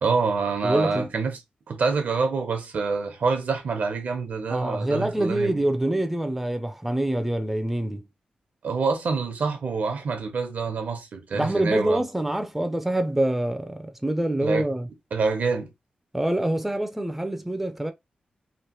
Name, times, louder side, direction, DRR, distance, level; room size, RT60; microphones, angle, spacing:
voice 1, 0.0-1.4 1.7-5.6 8.6-12.0 14.4-14.6 15.1-15.7, right 4 dB, 80° right, 0.9 m, -26 dB
voice 2, 0.6-1.1 4.5-8.1 11.3-14.9 16.1-17.9, right 1 dB, 5° right, 0.4 m, -25 dB
3.1 x 2.5 x 2.9 m
wide cardioid pair, 105°, 3 cm